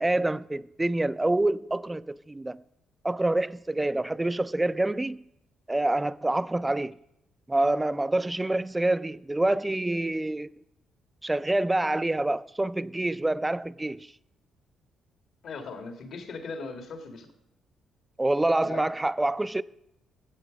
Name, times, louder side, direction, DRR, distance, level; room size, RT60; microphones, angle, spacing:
voice 1, 0.0-2.6 3.0-5.2 5.7-6.9 7.5-10.5 11.2-14.1 18.2-19.6, right 2 dB, 15° right, 0.4 m, -26 dB
voice 2, 15.4-17.3 18.6-18.9, left 4 dB, 65° left, 1.8 m, -39 dB
14.0 x 8.0 x 5.1 m
cardioid pair, 90°, 0 cm